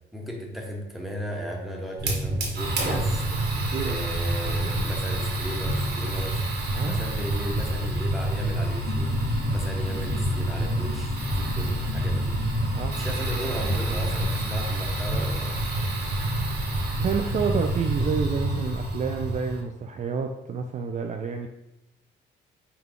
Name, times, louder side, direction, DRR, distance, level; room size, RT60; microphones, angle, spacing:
voice 1, 0.1-6.4 6.8-9.2 9.5-12.4 13.0-15.6, equal, ahead, -1 dB, 1.1 m, -35 dB
Fire, 2.0-19.6, right 1 dB, 60° right, 1.2 m, -27 dB
sound 1, 8.8-17.4, left 6 dB, 40° left, 0.4 m, -36 dB
voice 2, 17.0-21.5, right 6 dB, 40° right, 3 dB, 0.4 m, -29 dB
5.7 x 2.3 x 3.6 m, 0.91 s
cardioid pair, 90°, 20 cm